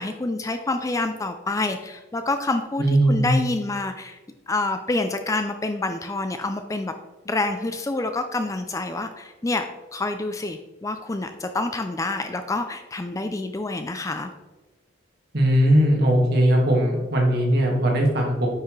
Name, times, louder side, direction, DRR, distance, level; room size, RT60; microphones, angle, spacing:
voice 1, 0.0-4.2 4.5-6.9 7.3-14.3, left 2 dB, 15° left, 7 dB, 0.4 m, -27 dB
voice 2, 2.8-3.3 15.3-18.5, right 1 dB, 55° right, 0 dB, 1.9 m, -19 dB
9.4 x 5.8 x 3.2 m, 1.2 s
head